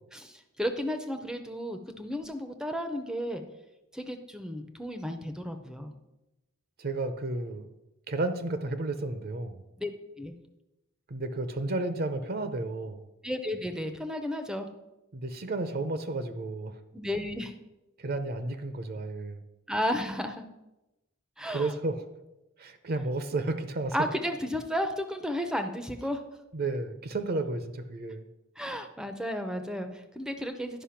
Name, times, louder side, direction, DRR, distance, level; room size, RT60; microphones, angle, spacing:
voice 1, 0.1-3.4 3.9-5.9 9.8-9.9 10.2-10.3 13.2-14.7 16.9-17.5 19.7-20.4 21.4-21.7 23.9-26.2 28.6-30.8, equal, 5° right, 7 dB, 0.6 m, -33 dB
voice 2, 6.8-7.7 8.1-9.6 11.1-13.0 15.1-16.8 18.0-19.4 21.5-22.0 22.6-24.0 26.5-28.2, right 2 dB, 50° right, 9 dB, 0.7 m, -32 dB
10.5 x 5.5 x 5.7 m, 0.98 s
head